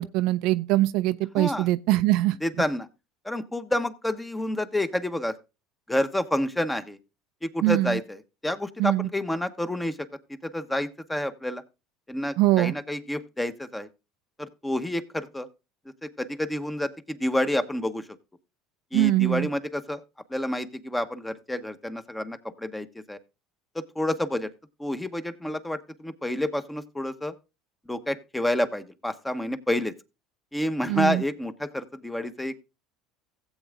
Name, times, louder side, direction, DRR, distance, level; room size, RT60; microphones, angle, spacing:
voice 1, 0.0-2.3 7.6-8.0 8.8-9.1 12.4-12.7 18.9-19.5 30.9-31.2, right 16 dB, 65° right, 0.5 m, -22 dB
voice 2, 1.4-1.7 2.4-2.9 3.2-5.4 5.9-7.0 7.4-10.1 10.4-11.6 12.1-13.9 14.4-15.5 16.0-18.1 18.9-20.0 20.3-23.2 23.7-24.5 24.8-27.3 27.9-29.9 30.5-32.6, left 1 dB, 10° left, 1.0 m, -29 dB
16.0 x 7.9 x 2.4 m
supercardioid pair, 95°, 0 cm